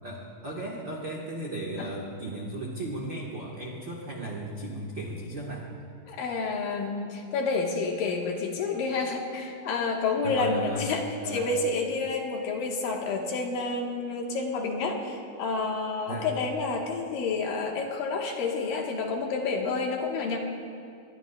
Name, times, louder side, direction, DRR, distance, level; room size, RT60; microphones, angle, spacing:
voice 1, 0.0-5.7 10.2-10.9 11.2-11.5 16.1-16.3, right 1 dB, 65° right, -2 dB, 1.1 m, -36 dB
voice 2, 6.1-20.4, left 4 dB, 70° left, 1 dB, 2.8 m, -29 dB
23.5 x 20.5 x 2.2 m, 2.4 s
omnidirectional pair, 4.2 m